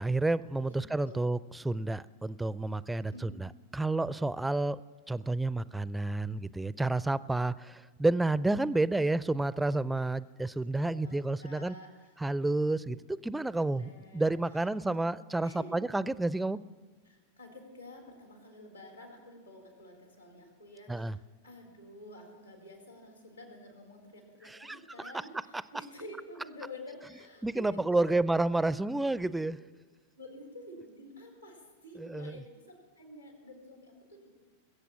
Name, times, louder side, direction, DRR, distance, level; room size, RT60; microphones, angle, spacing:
voice 1, 0.0-4.8 5.1-11.8 12.2-16.6 20.9-21.2 24.5-25.1 27.4-29.6 32.0-32.4, right 2 dB, 5° right, 18 dB, 0.4 m, -30 dB
voice 2, 0.6-1.2 3.0-3.3 10.5-12.1 13.6-15.1 15.4-15.8 17.1-28.1 28.6-28.7 30.2-34.3, left 1 dB, 90° left, 1 dB, 3.7 m, -50 dB
21.0 x 8.1 x 7.3 m, 1.4 s
figure-of-eight pair, 90°, 0 cm